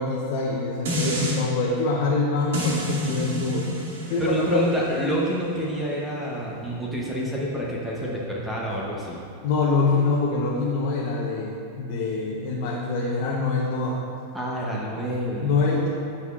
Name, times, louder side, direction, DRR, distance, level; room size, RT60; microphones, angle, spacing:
voice 1, 0.0-3.7 4.1-4.7 9.4-14.0 15.4-15.9, left 3 dB, 50° left, -3 dB, 0.8 m, -25 dB
sound 1, 0.8-1.4 2.5-7.7 8.1-8.2, equal, 85° right, 1.8 m, -30 dB
voice 2, 4.2-9.2 14.3-15.5, equal, 5° right, -5 dB, 0.7 m, -28 dB
14.0 x 5.7 x 2.4 m, 2.6 s
supercardioid pair, 175°, 0 cm